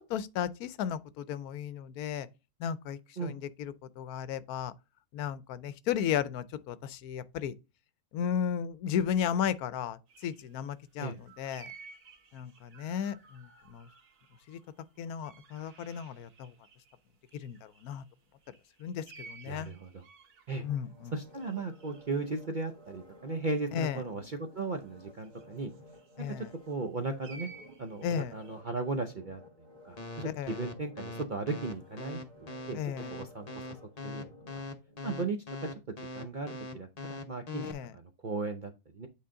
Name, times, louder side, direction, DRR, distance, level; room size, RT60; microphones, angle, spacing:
voice 1, 0.0-2.3 2.6-4.7 5.1-7.5 8.1-11.7 12.3-13.9 14.5-14.6 15.0-16.5 17.3-18.0 18.8-19.7 20.6-21.1 23.7-24.0 26.2-26.5 28.0-28.3 30.2-30.5 32.7-33.1 37.6-37.9, left 8 dB, 75° left, 1.1 m, -34 dB
sound 1, 10.1-17.0 17.3-24.1 25.2-26.7 27.2-28.6, right 4 dB, 70° right, 1.8 m, -55 dB
voice 2, 19.5-20.0 20.5-20.6 21.1-25.7 26.3-27.5 27.8-29.4 29.9-32.8 33.1-33.5 34.0-34.3 34.5-34.6 35.0-35.4 36.0-37.6 37.9-39.1, right 3 dB, 50° right, 0.5 m, -36 dB
sound 2, 20.6-35.6 36.1-36.2, left 1 dB, 30° right, 1.6 m, -55 dB
sound 3, 30.0-37.7, left 3 dB, 30° left, 0.8 m, -40 dB
8.5 x 3.9 x 3.7 m
omnidirectional pair, 1.6 m